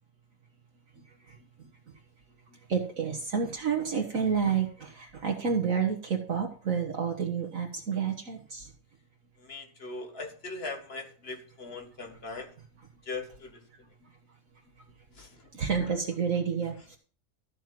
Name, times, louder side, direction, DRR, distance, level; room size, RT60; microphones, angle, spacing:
voice 1, 1.0-1.7 2.7-8.7 14.0-14.1 15.5-17.0, right 6 dB, 60° right, 2 dB, 1.7 m, -30 dB
voice 2, 9.4-12.5 13.0-13.6 15.1-15.5 15.8-16.0, left 3 dB, 40° left, 6 dB, 1.8 m, -40 dB
13.5 x 4.5 x 7.6 m, 0.42 s
omnidirectional pair, 1.6 m